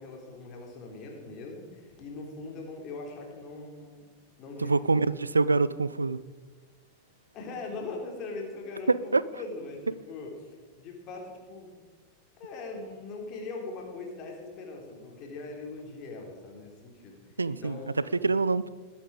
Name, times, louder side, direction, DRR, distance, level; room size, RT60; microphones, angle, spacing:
voice 1, 0.0-4.1 4.4-4.8 7.3-10.5 10.8-11.7 12.4-18.4, left 3 dB, 35° left, 1 dB, 3.9 m, -41 dB
voice 2, 4.6-6.2 8.9-9.2 17.4-17.8 18.1-18.7, right 3 dB, 80° right, 18 dB, 0.4 m, -25 dB
20.5 x 8.7 x 5.1 m, 1.4 s
figure-of-eight pair, 90°, 0 cm